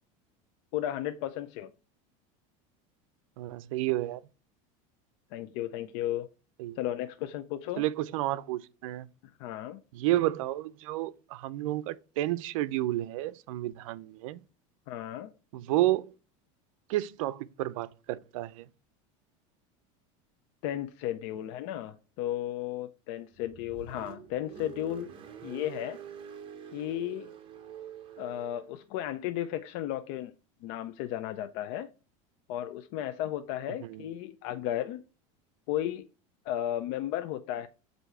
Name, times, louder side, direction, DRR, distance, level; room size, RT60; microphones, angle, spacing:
voice 1, 0.7-1.7 5.3-6.3 6.8-7.8 9.2-9.8 14.9-15.3 20.6-25.1 25.4-26.0 26.7-27.3 28.2-30.3 30.6-31.9 32.5-35.0 35.7-36.1 36.4-37.7, left 12 dB, 60° left, 0.5 m, -34 dB
voice 2, 3.4-4.2 6.6-6.8 7.8-9.1 9.9-14.4 15.5-16.1 16.9-18.7 33.8-34.1, right 15 dB, 80° right, 0.5 m, -31 dB
Car, 23.3-28.8, right 8 dB, 30° right, 1.0 m, -46 dB
8.0 x 2.7 x 4.3 m
supercardioid pair, 145°, 17 cm